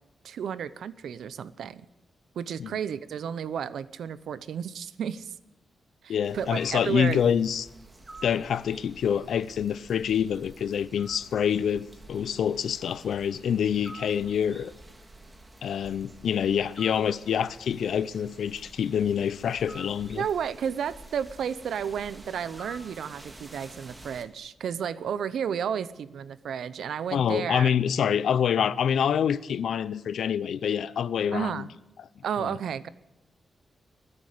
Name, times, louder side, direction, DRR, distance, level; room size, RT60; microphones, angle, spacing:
voice 1, 0.2-1.9 2.3-5.3 6.0-7.2 20.2-27.7 31.3-31.7 32.2-32.9, right 8 dB, 90° right, 0.7 m, -32 dB
voice 2, 6.1-7.7 8.2-14.7 15.6-20.3 27.1-31.7, left 8 dB, 80° left, 0.7 m, -26 dB
sound 1, 6.2-24.2, right 2 dB, 20° right, 2.0 m, -49 dB
21.5 x 9.8 x 6.6 m
wide cardioid pair, 140°, 0 cm